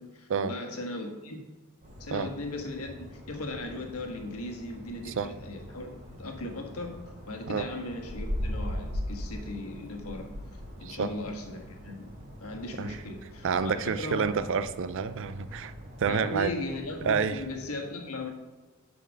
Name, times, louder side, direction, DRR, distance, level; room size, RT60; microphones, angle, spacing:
voice 1, 0.0-1.4 2.0-10.3 10.8-12.0 12.4-14.3 16.1-18.3, left 2 dB, 85° left, 3 dB, 1.5 m, -38 dB
sound 1, 1.8-17.5, equal, 35° right, 2.7 m, -41 dB
voice 2, 10.8-11.1 12.8-13.0 13.4-15.7 16.0-16.5 17.0-17.4, right 6 dB, 60° right, 12 dB, 0.4 m, -29 dB
9.9 x 4.3 x 6.3 m, 1.3 s
head